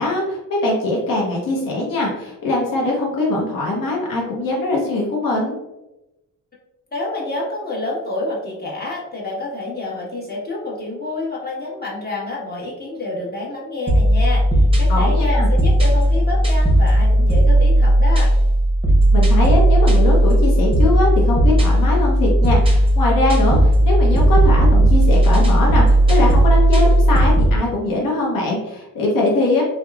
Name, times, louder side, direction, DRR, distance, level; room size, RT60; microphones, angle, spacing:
voice 1, 0.0-5.5 14.9-15.5 19.1-29.6, left 2 dB, 75° left, -2 dB, 0.7 m, -21 dB
voice 2, 6.9-18.3, left 2 dB, 30° left, -4 dB, 1.1 m, -28 dB
sound 1, 13.9-27.6, right 1 dB, 15° right, 0.7 m, -15 dB
2.9 x 2.1 x 2.3 m, 0.95 s
cardioid pair, 75°, 34 cm